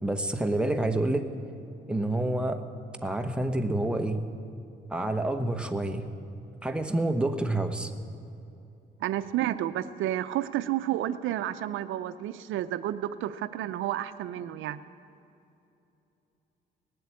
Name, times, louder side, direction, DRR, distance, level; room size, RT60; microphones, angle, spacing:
voice 1, 0.0-1.3 1.9-2.6 3.0-4.2 4.9-6.1 6.6-7.9, right 1 dB, 5° right, 5 dB, 1.1 m, -28 dB
voice 2, 9.0-14.8, right 12 dB, 80° right, 12 dB, 0.5 m, -31 dB
19.0 x 7.8 x 8.6 m, 2.7 s
cardioid pair, 90°, 20 cm